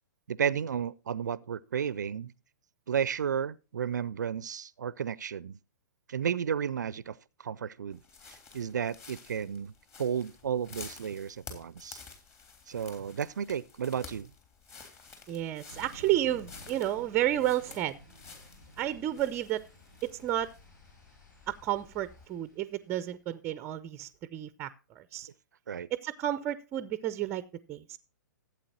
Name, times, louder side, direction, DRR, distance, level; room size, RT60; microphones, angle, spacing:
voice 1, 0.3-2.3 2.9-5.6 6.1-7.2 7.4-8.0 8.5-12.0 12.7-14.3 25.7-25.9, right 8 dB, 65° right, 0.5 m, -33 dB
sound 1, 7.9-22.3, left 5 dB, 25° left, 3.1 m, -52 dB
voice 2, 15.3-18.0 18.8-19.6 20.0-20.5 21.5-25.3 25.9-27.4 27.7-28.0, right 13 dB, 20° right, 0.6 m, -31 dB
sound 2, 15.7-23.2, equal, 75° left, 5.2 m, -54 dB
15.0 x 8.4 x 2.8 m
figure-of-eight pair, 115°, 10 cm